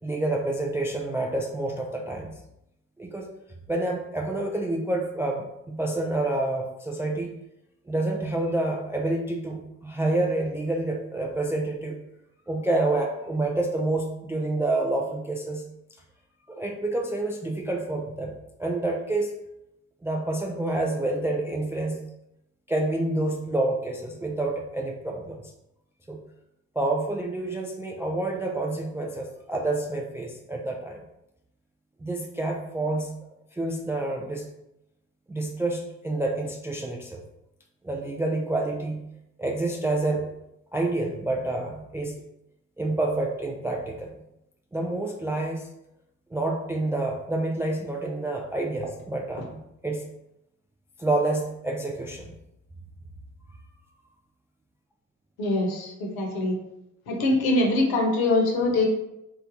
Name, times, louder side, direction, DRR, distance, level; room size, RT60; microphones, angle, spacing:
voice 1, 0.0-2.3 3.0-3.3 3.7-7.3 7.9-12.0 12.5-15.6 16.5-18.3 18.6-19.3 20.0-22.0 22.7-25.4 26.1-26.2 26.8-31.0 32.0-33.1 33.5-34.4 35.3-37.2 37.8-39.0 39.4-40.3 40.7-42.2 42.8-44.1 44.7-45.7 46.3-49.6 49.8-50.0 51.0-52.3, right 2 dB, 5° right, 0 dB, 0.3 m, -28 dB
voice 2, 55.4-56.5 57.1-58.9, left 2 dB, 60° left, 0 dB, 1.0 m, -23 dB
3.3 x 2.3 x 3.8 m, 0.84 s
figure-of-eight pair, 45°, 42 cm